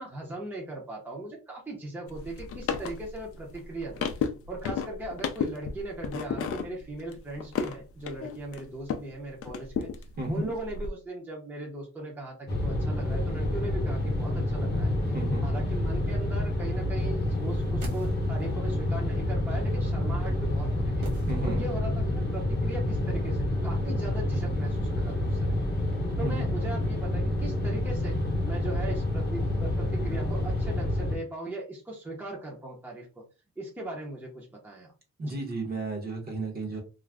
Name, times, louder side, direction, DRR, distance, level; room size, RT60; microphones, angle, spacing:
voice 1, 0.0-9.9 10.3-14.9 15.4-21.1 21.4-25.8 26.2-28.2 28.4-33.2 33.6-34.9 35.2-35.4, right 1 dB, 5° right, -2 dB, 0.6 m, -39 dB
sound 1, 2.1-9.1 9.4-10.9, left 6 dB, 55° left, 0.4 m, -34 dB
voice 2, 10.2-10.5 15.1-15.5 21.3-21.7 26.2-26.5 35.2-36.8, right 2 dB, 35° right, 1 dB, 0.8 m, -32 dB
sound 2, 12.5-31.2, left 1 dB, 35° left, 0.8 m, -28 dB
sound 3, 17.4-18.6 21.0-21.9 22.2-22.3, right 1 dB, 80° right, 0.9 m, -43 dB
2.4 x 2.0 x 3.3 m, 0.32 s
wide cardioid pair, 160°, 29 cm